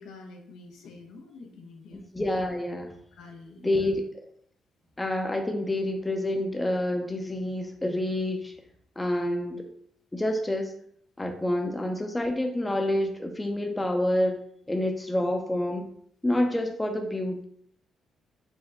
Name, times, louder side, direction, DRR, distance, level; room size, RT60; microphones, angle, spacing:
voice 1, 0.0-2.1 3.1-4.0, left 3 dB, 80° left, 2 dB, 0.8 m, -47 dB
voice 2, 1.9-2.9 3.6-4.0 5.0-8.5 9.0-9.6 10.1-10.7 11.2-14.4 14.7-15.9 16.2-17.4, left 1 dB, 15° left, 4 dB, 0.6 m, -28 dB
5.0 x 2.1 x 3.6 m, 0.64 s
cardioid pair, 90°, 0 cm